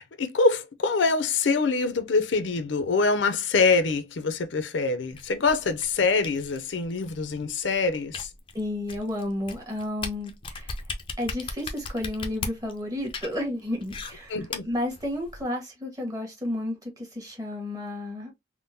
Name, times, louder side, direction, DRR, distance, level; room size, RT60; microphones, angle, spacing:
voice 1, 0.0-8.3 14.3-14.7, left 4 dB, 85° left, 0.5 m, -25 dB
sound 1, 5.2-15.4, left 4 dB, 30° left, 0.4 m, -38 dB
voice 2, 8.5-10.8 11.2-14.4 14.6-18.3, left 1 dB, 20° right, 1.2 m, -32 dB
3.6 x 2.1 x 2.7 m
head